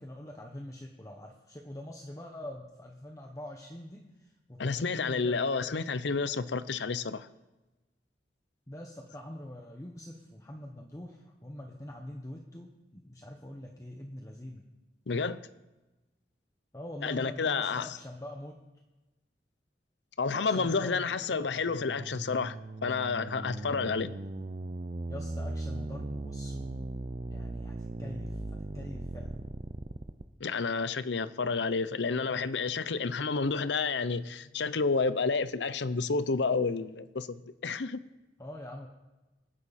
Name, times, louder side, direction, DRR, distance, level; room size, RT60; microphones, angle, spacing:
voice 1, 0.0-5.4 8.7-14.6 16.7-18.6 20.3-21.6 25.1-26.9 27.3-28.4 28.7-29.4 38.4-38.9, left 1 dB, 20° left, 1.2 m, -44 dB
voice 2, 4.6-7.3 15.1-15.4 17.0-18.0 20.2-24.1 30.4-38.0, left 4 dB, 80° left, 0.7 m, -30 dB
sound 1, 21.5-30.2, right 2 dB, 40° right, 0.6 m, -38 dB
25.5 x 11.0 x 4.3 m
head